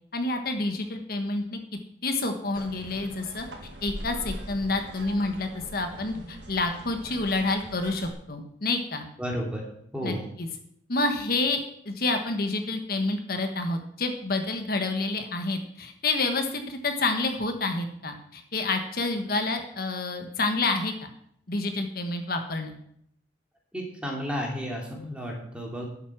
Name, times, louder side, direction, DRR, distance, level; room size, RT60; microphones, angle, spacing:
voice 1, 0.1-1.6 2.0-3.4 3.8-9.1 10.0-10.5 10.9-21.1 21.5-22.8, left 3 dB, 55° left, 5 dB, 1.4 m, -28 dB
sound 1, 2.5-8.1, right 1 dB, 85° right, 2.3 m, -41 dB
voice 2, 9.2-9.6 9.9-10.2 23.7-25.9, equal, 5° right, -1 dB, 3.0 m, -32 dB
12.0 x 8.2 x 6.1 m, 0.70 s
head